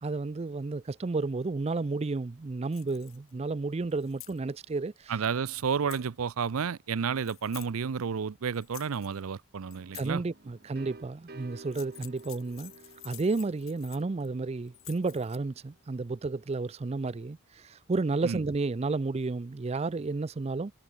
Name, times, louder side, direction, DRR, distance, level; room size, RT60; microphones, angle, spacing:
voice 1, 0.0-5.1 9.9-12.7 13.0-20.7, right 3 dB, 30° right, 0.4 m, -32 dB
sound 1, 2.7-3.3 3.9-4.4 5.6-6.1 7.2-7.7 8.5-9.2 9.7-10.1 11.6-14.3 14.7-15.4, left 18 dB, 75° left, 1.6 m, -49 dB
voice 2, 5.1-10.2 18.2-18.4, right 6 dB, 90° right, 0.5 m, -31 dB
sound 2, 9.7-15.4, right 2 dB, 45° right, 1.9 m, -52 dB
head